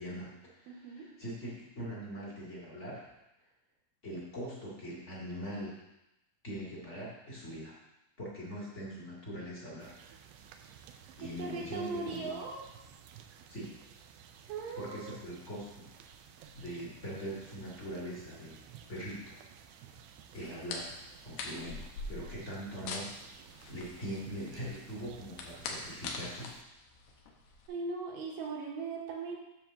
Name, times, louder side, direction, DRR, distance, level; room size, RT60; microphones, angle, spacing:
voice 1, 0.0-3.1 4.0-5.8 6.4-7.7 8.2-9.9 11.2-12.3 13.5-13.8 14.8-15.9 16.5-18.6 18.9-19.4 20.3-20.9 21.2-23.1 23.7-26.5, equal, 25° left, -6 dB, 1.5 m, -42 dB
voice 2, 0.7-1.1 11.2-12.6 14.4-15.1 27.7-29.4, right 4 dB, 70° right, -2 dB, 2.7 m, -39 dB
sound 1, 9.8-26.6, right 8 dB, 85° right, 2.5 m, -55 dB
sound 2, 20.3-27.7, left 3 dB, 75° left, 2.6 m, -44 dB
9.9 x 3.6 x 6.6 m, 0.92 s
omnidirectional pair, 4.3 m